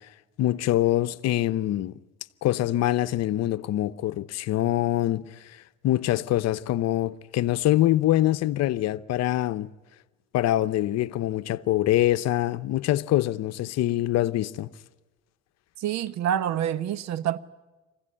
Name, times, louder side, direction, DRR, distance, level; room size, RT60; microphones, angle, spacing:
voice 1, 0.4-1.9 2.4-5.6 5.8-9.7 10.3-14.7, left 14 dB, 60° left, 0.9 m, -24 dB
voice 2, 15.8-17.4, right 10 dB, 65° right, 1.0 m, -27 dB
24.5 x 16.0 x 9.8 m
supercardioid pair, 90°, 30 cm